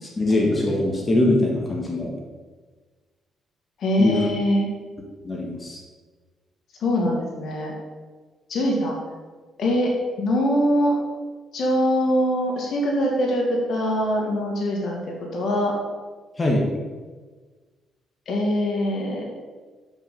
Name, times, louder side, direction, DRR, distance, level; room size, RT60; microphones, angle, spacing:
voice 1, 0.0-2.1 4.0-4.2 5.2-5.8 16.4-16.7, left 1 dB, 25° left, -1 dB, 1.7 m, -22 dB
voice 2, 3.8-4.7 6.8-7.7 8.5-8.9 9.6-9.9 10.2-10.9 11.5-15.7 18.3-19.2, equal, 65° left, -1 dB, 1.9 m, -23 dB
7.2 x 5.9 x 5.4 m, 1.4 s
cardioid pair, 90°, 0 cm